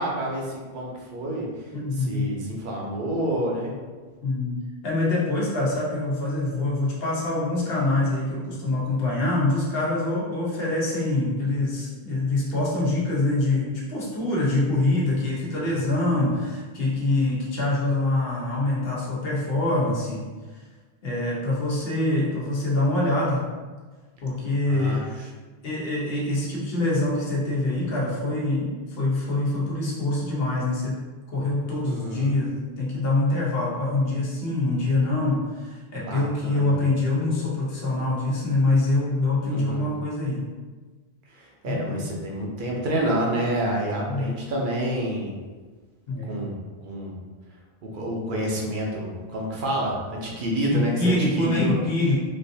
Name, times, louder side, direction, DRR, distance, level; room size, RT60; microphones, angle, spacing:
voice 1, 0.0-1.7 1.9-3.7 16.0-16.3 24.7-25.3 31.8-32.3 36.0-36.7 39.5-39.9 41.3-45.3 46.3-46.6 46.8-47.2 47.8-51.8, right 1 dB, 55° right, -2 dB, 0.8 m, -28 dB
voice 2, 1.7-2.3 4.2-4.6 4.8-20.2 21.0-23.4 24.2-25.0 25.6-31.0 31.3-40.4 41.6-42.0 44.1-44.3 46.1-46.4 50.7-52.2, left 2 dB, 70° left, -5 dB, 1.0 m, -25 dB
3.3 x 2.5 x 2.6 m, 1.4 s
omnidirectional pair, 1.1 m